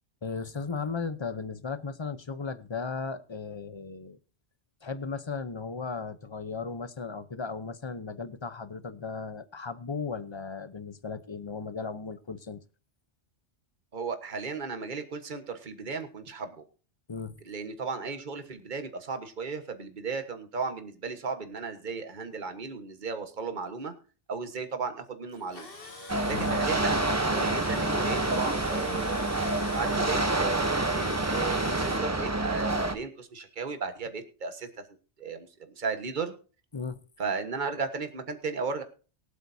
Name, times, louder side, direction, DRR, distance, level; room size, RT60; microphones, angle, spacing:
voice 1, 0.2-4.2 4.8-12.6 17.1-17.4 26.3-26.6 36.7-37.0, left 4 dB, 30° left, 13 dB, 0.8 m, -36 dB
voice 2, 13.9-16.6 17.4-23.9 24.3-25.6 26.3-29.2 29.7-30.6 30.9-34.7 35.2-35.5 35.8-36.3 37.2-38.8, right 4 dB, 45° right, 7 dB, 1.5 m, -35 dB
Tools, 25.3-32.0, left 3 dB, 55° left, 2.1 m, -44 dB
sound 1, 26.1-33.0, right 2 dB, 15° right, 0.8 m, -27 dB
23.0 x 8.3 x 2.7 m, 0.36 s
omnidirectional pair, 1.2 m